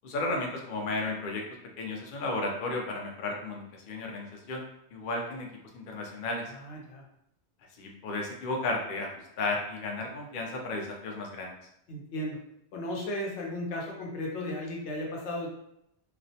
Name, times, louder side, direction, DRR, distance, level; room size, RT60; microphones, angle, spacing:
voice 1, 0.0-1.4 1.8-4.6 4.9-5.5 5.7-6.5 7.8-9.1 9.4-11.6, left 2 dB, 60° left, 1 dB, 0.6 m, -33 dB
voice 2, 6.5-7.0 11.9-12.4 12.7-15.5, left 1 dB, 90° left, -1 dB, 0.9 m, -35 dB
2.4 x 2.0 x 2.6 m, 0.78 s
omnidirectional pair, 1.1 m